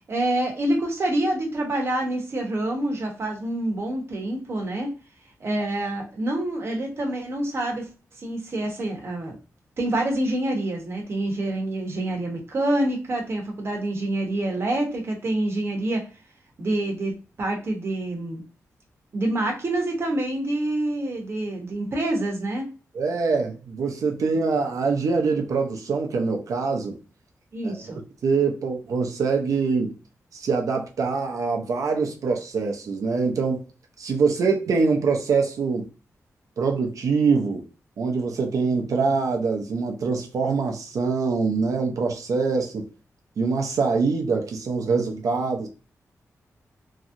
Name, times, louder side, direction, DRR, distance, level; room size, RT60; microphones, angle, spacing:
voice 1, 0.1-4.9 5.4-7.9 8.2-9.4 9.8-16.1 16.6-18.4 19.1-22.7 27.5-28.0, right 1 dB, 45° right, 1.0 m, -27 dB
voice 2, 22.9-27.0 27.6-27.8 28.2-29.9 30.3-33.6 34.0-35.9 36.6-37.7 38.0-42.9 43.4-45.7, right 4 dB, 75° right, 0.7 m, -24 dB
3.0 x 2.8 x 2.5 m
wide cardioid pair, 135°, 6 cm